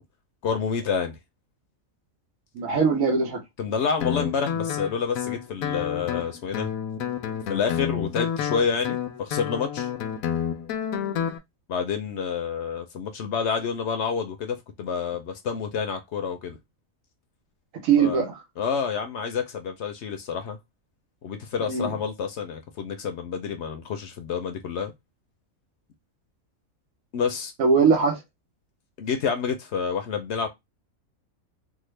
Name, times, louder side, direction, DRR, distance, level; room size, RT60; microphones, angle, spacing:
voice 1, 0.4-1.2 3.6-6.7 7.5-9.9 11.7-16.6 18.0-18.2 18.6-20.6 21.2-24.9 27.1-27.5 29.0-30.5, left 6 dB, 65° left, 0.8 m, -28 dB
voice 2, 2.5-3.4 11.0-11.3 17.7-18.4 21.6-21.9 27.6-28.2, right 5 dB, 80° right, 1.3 m, -21 dB
Guitar, 4.0-11.4, left 9 dB, 85° left, 1.0 m, -29 dB
3.5 x 2.1 x 3.2 m
omnidirectional pair, 1.4 m